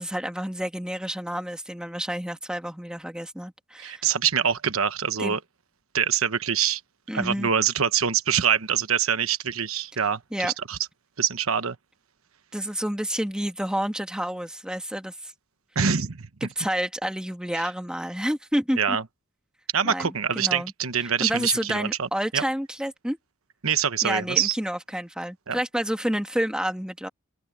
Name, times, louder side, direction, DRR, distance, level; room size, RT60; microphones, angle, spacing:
voice 1, 0.0-4.1 5.2-5.4 7.1-7.5 10.3-10.5 12.5-15.3 16.4-19.0 19.8-20.7 21.0-23.2 24.0-27.1, equal, 5° right, 1.7 m, -29 dB
voice 2, 3.8-5.4 5.9-6.8 7.1-10.8 11.2-11.8 15.7-16.3 17.5-17.6 18.8-19.0 19.7-22.4 23.6-24.5 25.5-25.6, right 8 dB, 75° right, 1.1 m, -25 dB
open air
head